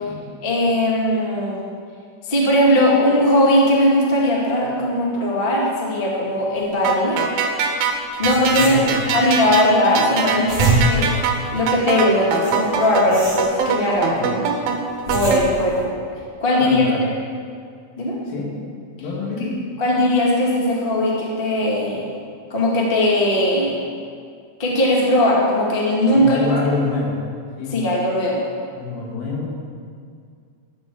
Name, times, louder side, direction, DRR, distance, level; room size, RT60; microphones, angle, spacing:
voice 1, 0.4-1.6 2.2-7.2 8.2-8.7 9.1-11.1 11.5-14.4 15.1-15.9 16.4-16.9 18.0-18.2 19.4-19.5 19.8-22.0 22.5-23.7 24.6-26.4 27.7-28.4, left 1 dB, 65° left, -4 dB, 0.5 m, -19 dB
sound 1, 6.8-15.4, right 6 dB, 70° right, 2.3 m, -23 dB
sound 2, 7.9-8.0 8.2-9.3 10.2-11.9 12.4-14.0 14.7-15.8, right 2 dB, 20° right, 3.0 m, -25 dB
voice 2, 8.5-9.0 14.1-14.4 16.6-17.0 18.3-18.5 19.0-19.5 26.1-27.2 27.6-27.8 28.7-29.5, left 4 dB, 85° left, -3 dB, 4.9 m, -26 dB
13.0 x 7.1 x 7.4 m, 2.2 s
omnidirectional pair, 5.5 m